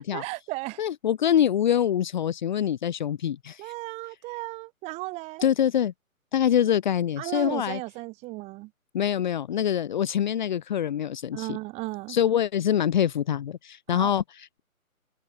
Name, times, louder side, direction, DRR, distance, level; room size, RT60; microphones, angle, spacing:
voice 1, 0.0-0.8 3.6-5.5 7.2-8.7 11.3-12.2 13.9-14.1, right 22 dB, 15° right, 4.6 m, -35 dB
voice 2, 0.8-3.7 5.4-5.9 6.3-7.8 8.9-11.6 12.1-14.6, left 10 dB, 30° left, 2.1 m, -25 dB
hypercardioid pair, 160°, 43 cm